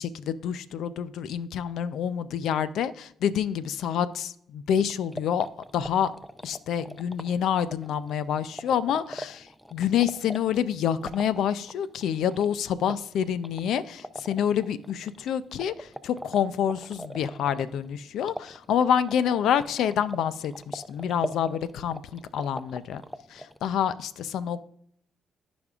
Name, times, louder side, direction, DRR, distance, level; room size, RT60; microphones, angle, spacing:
voice 1, 0.0-5.5 5.7-6.1 6.4-23.0 23.3-24.6, left 9 dB, 80° left, 15 dB, 0.5 m, -27 dB
sound 1, 4.9-23.6, equal, ahead, 0.4 m, -42 dB
14.5 x 5.2 x 2.4 m, 0.70 s
cardioid pair, 90°, 0 cm